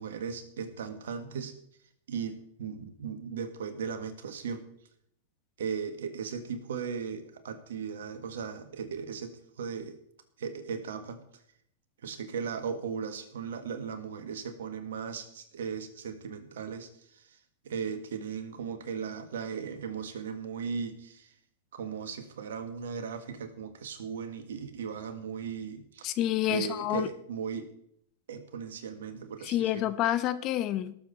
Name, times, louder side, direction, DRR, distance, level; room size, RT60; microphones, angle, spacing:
voice 1, 0.0-1.5 2.1-4.7 5.6-10.0 10.4-11.2 12.0-17.4 17.6-21.4 21.7-26.1 26.5-27.7 28.3-29.9, right 6 dB, 70° right, 9 dB, 1.8 m, -37 dB
voice 2, 26.0-27.1 29.4-30.9, left 13 dB, 40° left, 12 dB, 0.9 m, -28 dB
18.5 x 7.3 x 4.1 m, 0.71 s
hypercardioid pair, 100°, 0 cm